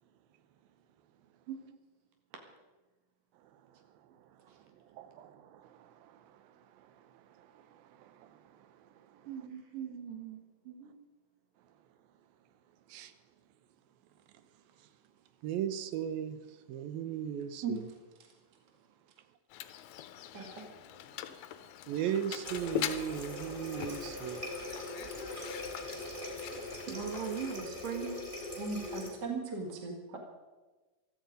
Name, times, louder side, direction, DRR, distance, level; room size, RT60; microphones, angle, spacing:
voice 1, 1.5-1.8 4.5-4.6 9.2-11.0 26.9-28.2, right 7 dB, 70° right, 4 dB, 3.3 m, -40 dB
voice 2, 4.9-9.3 12.9-13.1 15.4-16.4 16.7-17.9 21.9-24.4 30.1-30.2, right 9 dB, 90° right, 12 dB, 2.7 m, -38 dB
Mechanisms, 19.5-27.6, left 11 dB, 75° left, 1.7 m, -42 dB
Water tap faucet, 22.4-29.1, left 1 dB, 15° right, 2.6 m, -41 dB
voice 3, 28.6-30.2, right 4 dB, 35° right, 1 dB, 1.9 m, -37 dB
16.0 x 14.0 x 5.2 m, 1.2 s
omnidirectional pair, 4.0 m